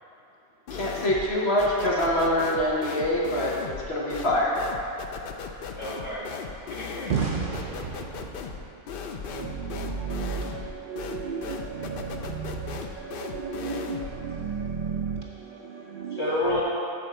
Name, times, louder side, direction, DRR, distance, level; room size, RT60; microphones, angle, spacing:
sound 1, 0.7-1.3 1.6-14.2, left 5 dB, 70° left, 0.5 m, -37 dB
voice 1, 0.7-4.6, left 1 dB, 50° left, -5 dB, 1.3 m, -25 dB
voice 2, 5.7-7.1 16.1-16.6, left 1 dB, 20° left, -9 dB, 2.2 m, -30 dB
voice 3, 7.1-8.7 9.2-16.6, right 5 dB, 75° right, 0 dB, 0.4 m, -33 dB
8.4 x 4.4 x 6.8 m, 2.7 s
omnidirectional pair, 1.5 m